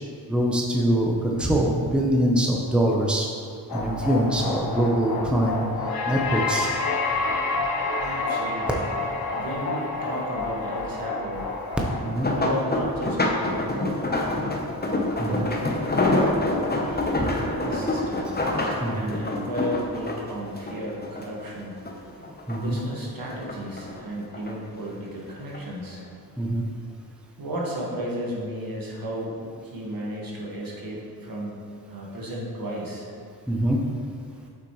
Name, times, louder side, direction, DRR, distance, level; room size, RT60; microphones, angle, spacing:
voice 1, 0.3-3.3 3.7-5.6 6.1-6.7 11.9-12.3 15.2-15.5 17.2-17.3 18.8-19.1 22.5-22.8 26.4-26.6 33.5-33.8, right 1 dB, 5° right, -2 dB, 0.9 m, -23 dB
sound 1, 3.7-12.1, left 3 dB, 65° left, 1.0 m, -28 dB
voice 2, 8.0-8.9 9.3-11.5 12.3-14.7 15.2-18.3 18.9-21.8 22.5-26.0 27.4-31.6 31.9-33.1, equal, 60° right, -4 dB, 1.8 m, -34 dB
sound 2, 11.9-21.5 21.8-22.8 23.2-24.5 25.3-25.6 26.0-26.1, left 2 dB, 25° left, 1.0 m, -26 dB
8.0 x 5.9 x 3.2 m, 2.3 s
cardioid pair, 65°, 39 cm